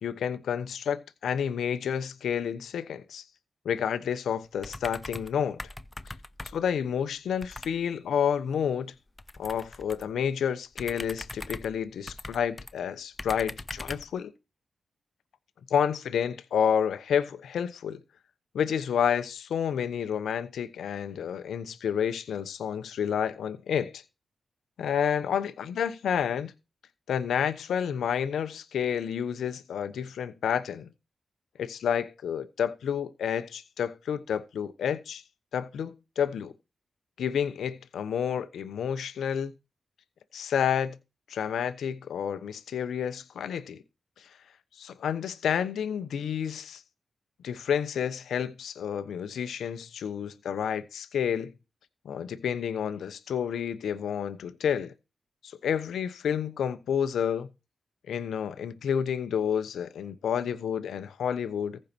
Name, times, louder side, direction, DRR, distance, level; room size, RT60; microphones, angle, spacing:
voice 1, 0.0-3.2 3.6-5.6 6.5-8.9 9.4-14.3 15.7-18.0 18.5-24.0 24.8-26.5 27.1-30.9 31.6-35.2 35.5-36.5 37.2-39.5 40.3-41.0 41.3-43.8 44.8-46.8 47.4-51.5 52.0-54.9 55.4-57.5 58.1-61.8, left 8 dB, 85° left, 1.0 m, -30 dB
sound 1, 4.6-5.3 5.6-6.8 7.4-7.8 9.2-10.1 10.7-12.7 13.2-14.1, left 2 dB, 25° left, 0.8 m, -41 dB
14.5 x 5.6 x 4.5 m
cardioid pair, 55°, 0 cm